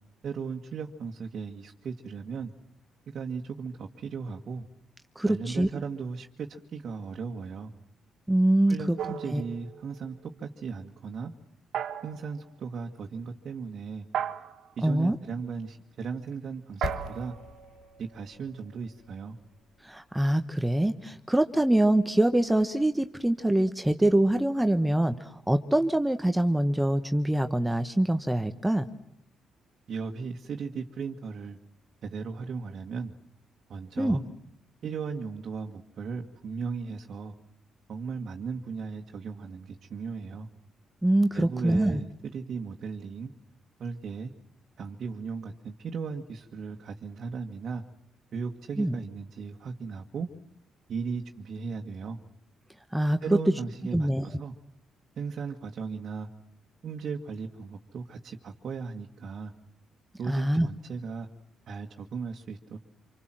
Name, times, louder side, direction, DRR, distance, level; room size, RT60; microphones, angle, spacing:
voice 1, 0.2-2.5 3.1-4.7 5.3-7.7 8.7-11.3 12.0-14.1 14.8-17.3 18.0-19.4 29.9-31.6 32.0-33.1 33.7-34.2 34.8-37.3 37.9-40.5 41.3-43.3 43.8-44.3 44.8-47.8 48.3-50.3 50.9-52.2 53.2-54.5 55.2-56.3 56.8-59.5 60.2-61.3 61.7-62.8, right 5 dB, 60° right, 2 dB, 1.8 m, -36 dB
voice 2, 5.1-5.7 8.3-9.0 9.3-9.4 14.8-15.2 19.8-28.9 34.0-34.2 41.0-42.0 48.8-49.0 52.9-53.4 53.9-54.2 60.3-60.7, right 1 dB, 10° right, 9 dB, 1.1 m, -24 dB
sound 1, 9.0-10.1 11.7-12.4 14.1-14.8 16.8-18.6, right 9 dB, 75° right, 1.9 m, -36 dB
sound 2, 16.8-20.8 21.0-21.1, left 6 dB, 75° left, 1.7 m, -42 dB
27.0 x 25.0 x 7.7 m, 0.73 s
cardioid pair, 90°, 0 cm